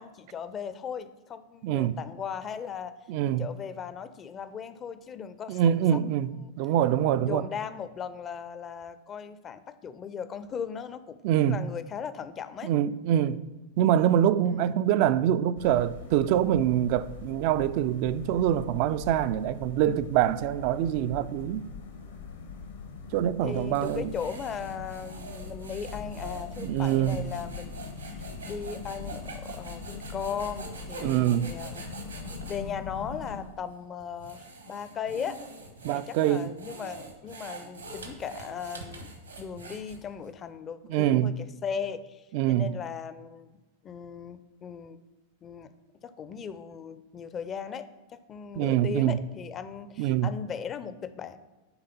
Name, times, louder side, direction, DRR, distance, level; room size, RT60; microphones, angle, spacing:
voice 1, 0.0-2.9 3.2-5.6 5.9-6.0 6.3-6.5 7.2-12.7 14.4-14.8 23.4-31.9 32.5-35.4 35.9-39.1 39.4-43.6 43.8-45.0 45.4-45.7 46.0-51.4, left 7 dB, 25° left, 0.5 m, -38 dB
voice 2, 1.6-2.0 3.1-3.4 5.5-6.3 6.6-7.4 11.2-11.6 12.6-13.4 13.8-21.7 23.1-24.1 26.6-27.2 31.0-31.5 35.8-36.5 40.9-41.3 42.3-42.7 48.6-49.2 50.0-50.3, right 11 dB, 45° right, 0.3 m, -25 dB
sound 1, 15.6-33.4, left 5 dB, 65° left, 1.1 m, -42 dB
sound 2, 23.5-32.6 33.2-33.4 34.0-40.3, right 3 dB, 80° right, 1.3 m, -45 dB
9.7 x 3.8 x 5.7 m
figure-of-eight pair, 90°, 0 cm